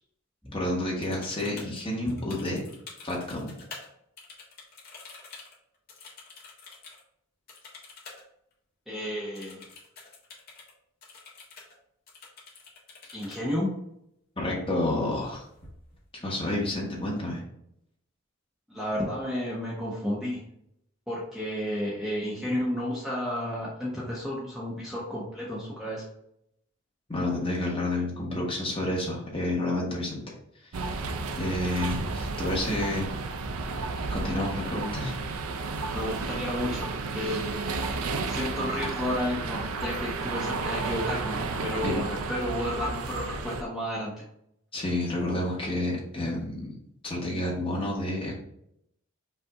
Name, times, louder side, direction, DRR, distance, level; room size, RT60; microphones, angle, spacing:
voice 1, 0.5-2.6 3.0-3.5 14.4-15.4 16.2-17.4 27.1-30.2 30.7-30.8 31.4-33.1 34.1-35.1 41.8-42.0 44.7-46.7 47.0-48.3, left 1 dB, 25° left, -4 dB, 1.2 m, -29 dB
sound 1, 1.0-3.9 4.2-7.0 7.5-8.2 8.5-8.6 9.3-10.7 11.0-11.7 12.1-13.4 15.1-15.3 15.6-16.0 16.4-17.0, left 4 dB, 45° left, 1.3 m, -48 dB
voice 2, 8.9-9.6 13.1-13.7 18.7-20.4 21.1-26.0 35.9-37.4 38.3-44.1, equal, ahead, -7 dB, 0.9 m, -32 dB
sound 2, 30.7-43.6, right 3 dB, 80° right, 0.5 m, -32 dB
5.4 x 2.6 x 3.5 m, 0.76 s
head